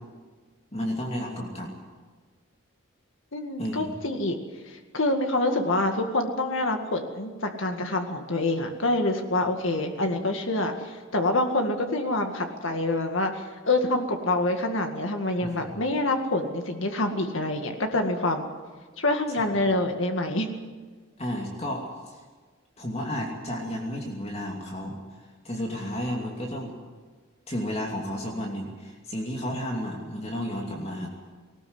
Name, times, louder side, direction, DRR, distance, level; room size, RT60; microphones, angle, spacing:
voice 1, 0.7-1.8 3.6-3.9 15.4-15.8 19.4-19.8 21.2-22.2 22.8-25.0 25.4-26.7 27.5-31.1, equal, 30° left, 0 dB, 2.7 m, -32 dB
voice 2, 3.3-4.4 4.7-18.5 19.0-20.5, left 2 dB, 65° left, 4 dB, 2.1 m, -26 dB
19.5 x 19.0 x 8.0 m, 1.4 s
head